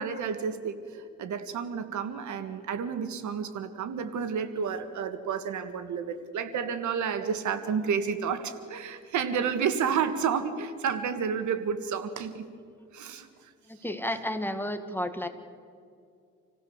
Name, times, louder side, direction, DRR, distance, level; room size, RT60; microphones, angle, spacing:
voice 1, 0.0-12.5 12.9-13.5, right 7 dB, 75° right, 10 dB, 1.8 m, -31 dB
voice 2, 13.7-15.3, left 1 dB, 5° left, 8 dB, 1.8 m, -32 dB
27.5 x 16.5 x 7.2 m, 2.3 s
cardioid pair, 90°, 30 cm